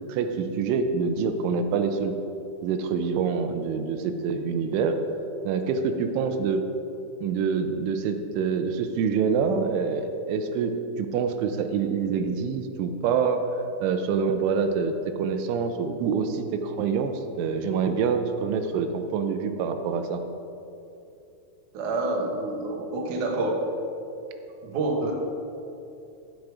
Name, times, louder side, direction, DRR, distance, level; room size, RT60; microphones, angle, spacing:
voice 1, 0.1-2.1 2.6-5.0 5.4-6.6 7.2-10.7 11.0-13.4 13.8-20.2, right 5 dB, 85° right, 7 dB, 3.2 m, -26 dB
voice 2, 21.7-23.7 24.6-25.1, right 2 dB, 65° right, 0 dB, 2.0 m, -27 dB
14.5 x 6.4 x 4.8 m, 2.8 s
omnidirectional pair, 5.4 m